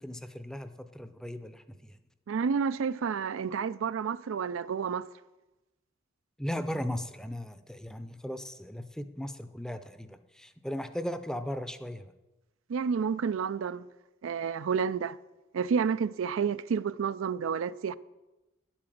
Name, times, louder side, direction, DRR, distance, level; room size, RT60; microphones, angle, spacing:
voice 1, 0.0-1.9 6.4-12.1, equal, 5° left, 0.6 m, -37 dB
voice 2, 2.3-5.1 12.7-13.9 14.2-15.2 15.5-17.9, right 6 dB, 75° right, 0.4 m, -30 dB
9.8 x 8.8 x 7.7 m
head